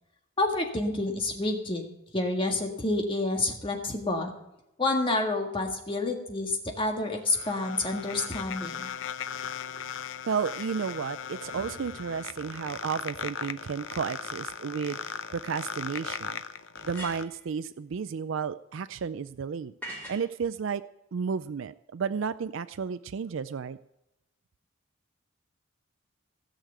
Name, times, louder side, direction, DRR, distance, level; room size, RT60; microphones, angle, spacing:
voice 1, 0.4-1.8 2.1-4.3 4.8-8.9, left 2 dB, 25° left, 2 dB, 1.7 m, -29 dB
sound 1, 6.8-17.2, left 7 dB, 65° left, 0.6 m, -38 dB
voice 2, 10.3-16.4 16.8-20.8 21.1-23.8, right 6 dB, 65° right, 14 dB, 0.4 m, -32 dB
sound 2, 11.4-13.7, right 1 dB, 30° right, 3.6 m, -52 dB
sound 3, 16.7-17.4 19.8-20.3, equal, 5° left, 4.5 m, -41 dB
17.0 x 6.5 x 8.0 m, 0.88 s
head